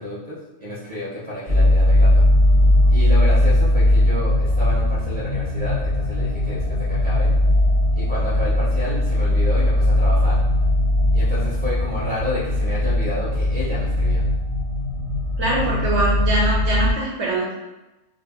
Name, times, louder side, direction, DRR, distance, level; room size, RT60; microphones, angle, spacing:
voice 1, 0.0-2.2 2.9-7.3 7.9-10.4 11.1-14.2, left 1 dB, 10° left, -7 dB, 0.6 m, -30 dB
sound 1, 1.5-16.9, left 1 dB, 40° right, 0.5 m, -19 dB
voice 2, 15.4-17.5, right 2 dB, 65° right, -4 dB, 0.8 m, -23 dB
2.7 x 2.0 x 3.5 m, 1.0 s
omnidirectional pair, 1.4 m